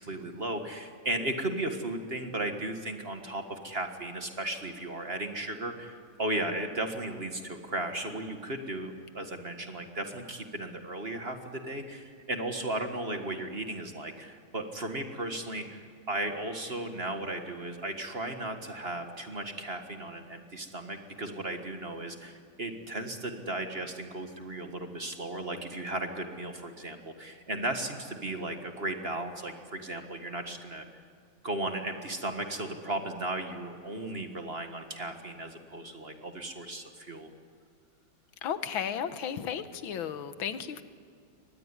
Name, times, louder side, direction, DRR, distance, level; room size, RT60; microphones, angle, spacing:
voice 1, 0.0-30.9 31.4-37.3, right 1 dB, 30° right, 6 dB, 1.8 m, -35 dB
voice 2, 38.4-40.8, left 8 dB, 80° left, 12 dB, 1.8 m, -34 dB
24.0 x 19.5 x 9.9 m, 2.2 s
omnidirectional pair, 2.2 m